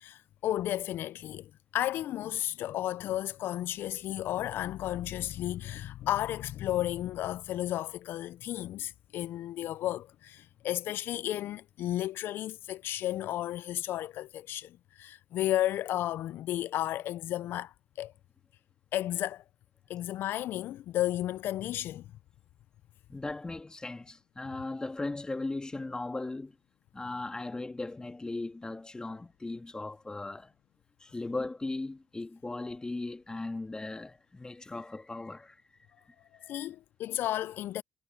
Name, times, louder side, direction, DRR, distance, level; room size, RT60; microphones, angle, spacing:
voice 1, 0.0-18.1 18.9-19.4 19.9-22.1 36.4-37.8, left 13 dB, 80° left, 0.3 m, -33 dB
voice 2, 23.1-26.6 26.9-30.5 31.0-35.6 36.4-36.7, left 2 dB, 20° left, 1.6 m, -38 dB
supercardioid pair, 65°, 4 cm